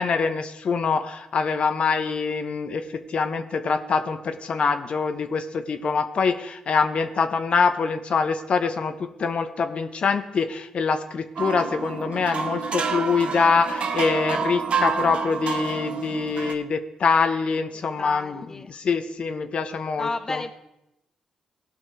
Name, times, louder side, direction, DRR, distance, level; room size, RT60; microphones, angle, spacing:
voice 1, 0.0-20.4, left 5 dB, 60° left, 9 dB, 1.0 m, -24 dB
sound 1, 11.4-16.5, right 5 dB, 60° right, 0.9 m, -28 dB
voice 2, 18.0-18.7 20.0-20.5, left 3 dB, 25° left, 8 dB, 0.6 m, -32 dB
17.0 x 5.9 x 4.7 m, 0.89 s
supercardioid pair, 60°, 2 cm